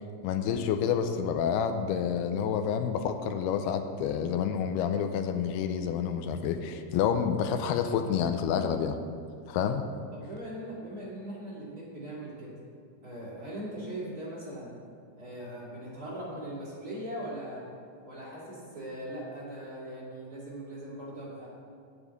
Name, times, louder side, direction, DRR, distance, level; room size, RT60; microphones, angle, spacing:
voice 1, 0.2-9.0 9.5-9.9, left 7 dB, 80° left, 7 dB, 2.4 m, -28 dB
voice 2, 10.1-12.5 13.0-14.7 15.2-17.7 18.0-21.5, right 1 dB, 25° right, -7 dB, 2.7 m, -40 dB
8.7 x 7.1 x 8.0 m, 2.2 s
omnidirectional pair, 5.0 m